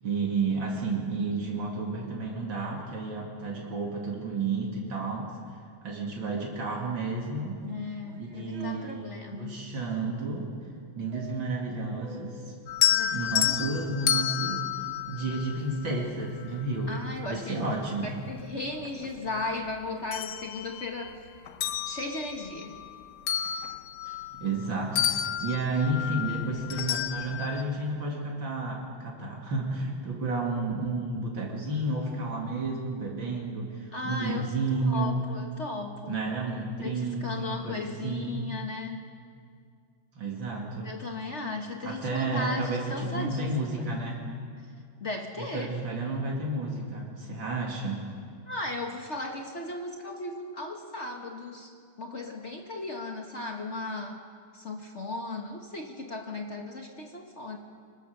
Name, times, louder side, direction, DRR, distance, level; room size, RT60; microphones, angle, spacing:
voice 1, 0.0-5.3 5.8-7.6 8.2-9.0 9.3-10.5 10.9-12.5 13.1-14.7 15.1-17.0 17.3-18.1 24.0-35.2 36.1-38.4 40.1-40.9 41.8-44.2 45.4-48.1, right 3 dB, 75° right, -2 dB, 3.3 m, -31 dB
voice 2, 7.6-9.7 12.9-13.7 16.9-17.6 18.0-21.2 21.9-22.8 23.3-23.6 33.9-34.5 34.8-36.2 36.8-39.0 40.8-43.7 45.0-45.7 48.5-54.2 54.5-57.6, left 2 dB, 40° left, 2 dB, 1.7 m, -36 dB
sound 1, 7.7-8.9 11.1-12.7, right 2 dB, 50° right, 2.0 m, -48 dB
sound 2, 12.7-16.0 17.7-17.8 18.3-19.5 19.8-21.1 21.5-24.7 24.9-27.6, left 10 dB, 65° left, 1.3 m, -30 dB
24.5 x 23.0 x 6.7 m, 2.2 s
omnidirectional pair, 2.1 m